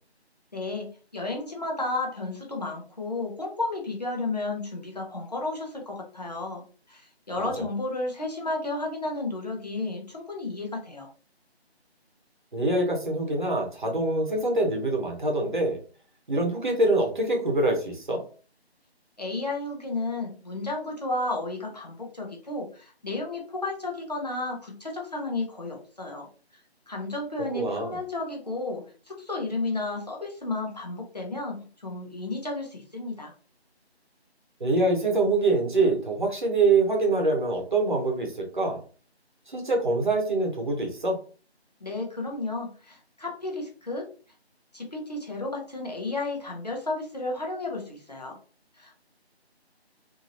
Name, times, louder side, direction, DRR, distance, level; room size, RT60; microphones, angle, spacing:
voice 1, 0.5-11.1 19.2-26.3 26.9-33.3 41.8-44.1 44.7-48.4 48.8-48.9, left 2 dB, 40° left, 0 dB, 0.8 m, -32 dB
voice 2, 12.5-15.8 16.3-18.2 27.5-28.0 34.6-38.8 39.5-41.2, right 2 dB, 45° right, 1 dB, 1.0 m, -25 dB
2.8 x 2.7 x 2.7 m, 0.39 s
figure-of-eight pair, 170°, 33 cm